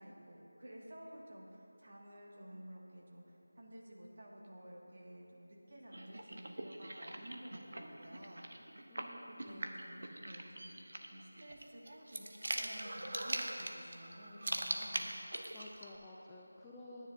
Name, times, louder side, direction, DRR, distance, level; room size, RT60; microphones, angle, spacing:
voice 1, 0.0-8.5 8.9-10.8 11.1-15.2, equal, 45° right, -2 dB, 1.9 m, -53 dB
sound 1, 5.9-15.9, right 1 dB, 65° right, 1.0 m, -42 dB
voice 2, 8.9-9.7 15.5-17.1, left 1 dB, 5° left, -5 dB, 0.4 m, -53 dB
22.5 x 10.0 x 2.6 m, 2.9 s
figure-of-eight pair, 175°, 0 cm